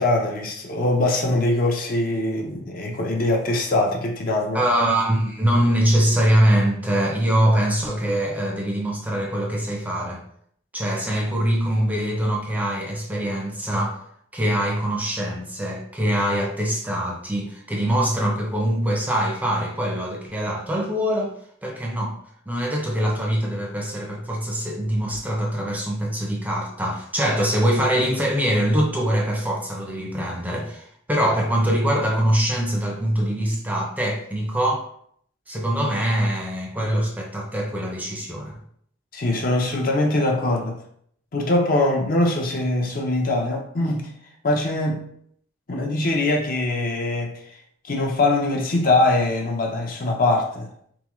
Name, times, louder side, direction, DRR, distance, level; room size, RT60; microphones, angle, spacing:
voice 1, 0.0-4.6 39.1-40.8 41.3-44.1 44.4-45.0 45.7-47.3 47.8-50.7, left 2 dB, 45° left, 1 dB, 0.6 m, -22 dB
voice 2, 4.5-10.2 10.7-14.0 14.3-21.3 21.6-22.1 22.5-34.8 35.5-38.5, right 1 dB, 10° right, -1 dB, 0.5 m, -23 dB
3.8 x 3.6 x 3.0 m, 0.66 s
head